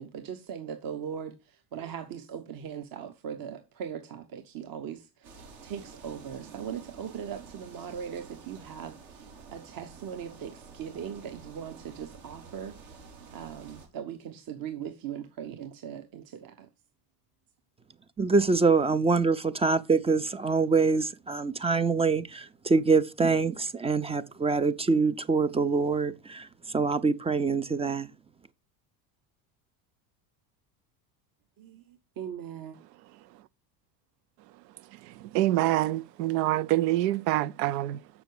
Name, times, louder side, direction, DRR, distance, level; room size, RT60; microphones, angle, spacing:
voice 1, 0.0-16.7 31.6-32.8, right 8 dB, 45° right, 1.2 m, -40 dB
sound 1, 5.2-13.9, right 5 dB, 70° right, 3.8 m, -49 dB
voice 2, 18.2-26.5 26.7-28.1, right 4 dB, 15° right, 0.3 m, -25 dB
voice 3, 33.0-33.4 34.5-38.1, right 15 dB, 85° right, 0.6 m, -27 dB
7.1 x 6.2 x 4.7 m
supercardioid pair, 90°, 48 cm